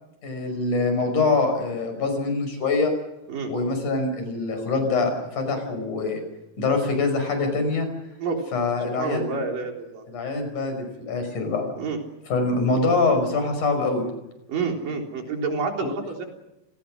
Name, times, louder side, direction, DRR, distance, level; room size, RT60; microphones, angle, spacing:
voice 1, 0.2-2.9 3.5-6.2 6.6-7.9 8.5-9.3 10.1-11.7 12.3-14.1 15.8-15.9, left 3 dB, 65° left, 6 dB, 7.0 m, -24 dB
voice 2, 8.9-10.0 11.8-12.0 14.5-16.2, right 4 dB, 90° right, 2 dB, 5.4 m, -28 dB
30.0 x 19.0 x 6.5 m, 0.93 s
omnidirectional pair, 3.8 m